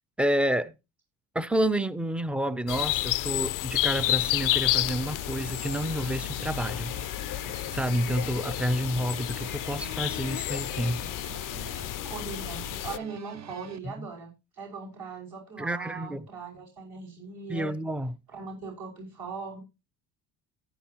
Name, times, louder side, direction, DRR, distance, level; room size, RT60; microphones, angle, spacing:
voice 1, 0.2-0.8 1.3-6.9 7.2-7.4 7.7-11.0 14.0-14.1 15.6-16.3 17.5-18.1, equal, 5° right, 0.6 m, -29 dB
sound 1, 2.7-13.0, left 16 dB, 45° left, 0.5 m, -31 dB
sound 2, 4.0-13.8, right 7 dB, 35° right, 0.9 m, -46 dB
voice 2, 12.0-17.7 18.3-19.6, right 4 dB, 55° right, 6.2 m, -40 dB
15.0 x 9.4 x 3.0 m
supercardioid pair, 75°, 45 cm